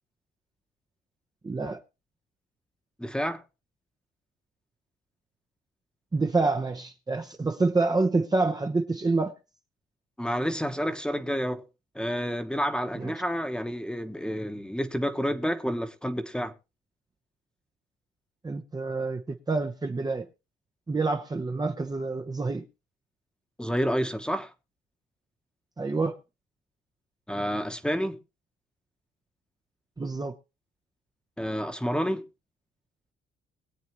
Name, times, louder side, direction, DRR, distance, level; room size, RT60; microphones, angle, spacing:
voice 1, 1.4-1.8 6.1-9.3 13.0-13.1 18.4-19.2 19.5-20.3 20.9-22.6 25.8-26.2 30.0-30.3, right 3 dB, 20° right, 0.9 m, -27 dB
voice 2, 3.0-3.4 10.2-11.7 11.9-16.5 23.6-24.5 27.3-28.2 31.4-32.3, equal, 5° left, 1.2 m, -29 dB
22.5 x 8.2 x 3.1 m
cardioid pair, 90°, 20 cm